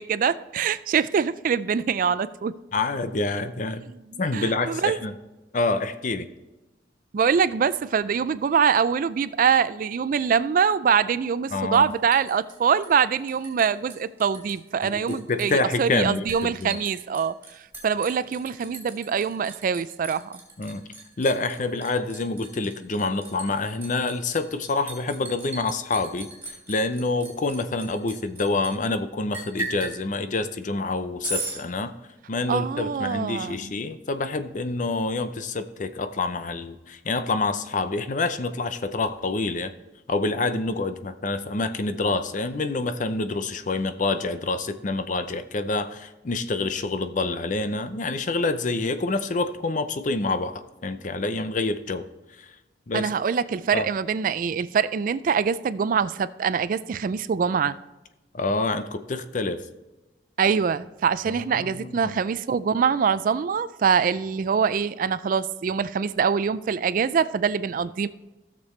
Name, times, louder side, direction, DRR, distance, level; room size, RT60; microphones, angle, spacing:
voice 1, 0.0-2.5 4.1-5.0 7.1-17.3 17.8-20.4 32.5-33.7 52.9-57.8 60.4-68.1, right 6 dB, 50° right, 0.3 m, -24 dB
voice 2, 2.7-3.8 4.2-5.1 5.5-6.3 11.5-11.9 14.8-16.8 20.6-20.8 21.2-26.3 26.7-31.9 32.3-39.7 40.1-52.0 52.4-52.5 52.9-53.1 53.7-53.9 58.3-59.6 61.3-62.1, left 3 dB, 45° left, 0.6 m, -27 dB
Liquid, 11.7-13.6 13.9-14.5 14.8-28.7 29.3-30.0 31.2-31.6, right 2 dB, 10° right, 3.0 m, -37 dB
15.5 x 6.8 x 3.2 m
head